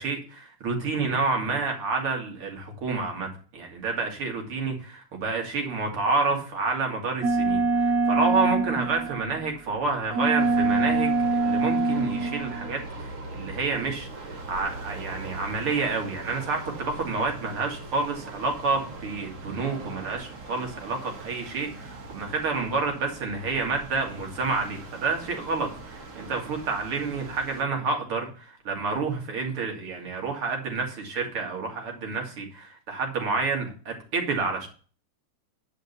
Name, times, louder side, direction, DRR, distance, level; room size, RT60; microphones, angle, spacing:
voice 1, 0.0-34.7, right 4 dB, 90° right, 2 dB, 3.5 m, -29 dB
sound 1, 7.2-9.5 10.1-12.8, right 3 dB, 60° right, 1.9 m, -24 dB
sound 2, 10.4-27.6, right 3 dB, 40° right, 1.7 m, -40 dB
10.0 x 5.3 x 6.8 m, 0.38 s
omnidirectional pair, 2.3 m